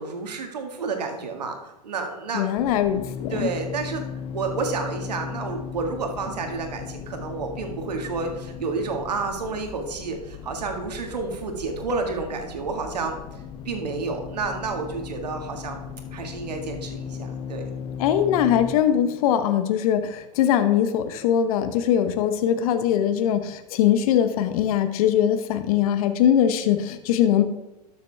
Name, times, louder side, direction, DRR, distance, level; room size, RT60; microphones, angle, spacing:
voice 1, 0.0-2.5 3.3-13.4 13.7-15.8 16.1-17.6, right 4 dB, 85° right, 4 dB, 1.8 m, -30 dB
voice 2, 2.3-3.5 18.0-27.4, left 10 dB, 60° left, 9 dB, 1.0 m, -21 dB
sound 1, 2.6-18.7, left 7 dB, 25° left, 0.7 m, -37 dB
12.5 x 6.8 x 3.4 m, 0.93 s
hypercardioid pair, 105°, 21 cm